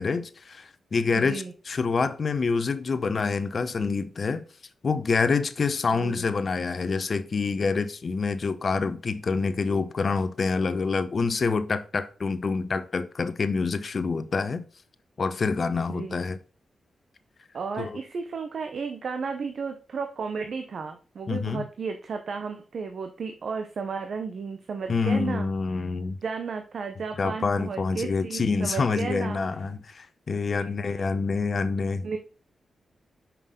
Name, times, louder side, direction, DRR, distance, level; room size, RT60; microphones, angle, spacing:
voice 1, 0.0-4.4 4.8-14.6 15.2-16.4 17.8-18.0 21.3-21.6 24.9-26.2 27.2-32.2, left 4 dB, 55° left, 0.7 m, -27 dB
voice 2, 1.1-1.5 5.9-6.2 15.9-16.2 17.5-25.5 25.7-25.9 26.2-29.4 30.5-30.8 32.0-32.2, right 5 dB, 65° right, 0.7 m, -33 dB
5.8 x 5.4 x 3.7 m
supercardioid pair, 45°, 0 cm